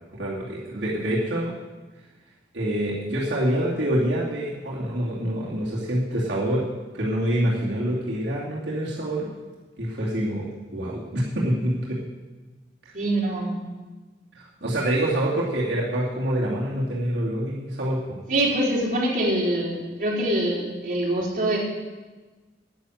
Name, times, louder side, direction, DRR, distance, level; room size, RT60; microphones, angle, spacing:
voice 1, 0.1-1.5 2.5-6.6 6.9-9.3 9.8-12.0 14.4-18.2, right 1 dB, 80° right, -6 dB, 2.6 m, -26 dB
voice 2, 12.9-13.6 18.3-21.6, right 1 dB, 45° right, -5 dB, 4.2 m, -24 dB
10.0 x 9.7 x 7.9 m, 1.2 s
head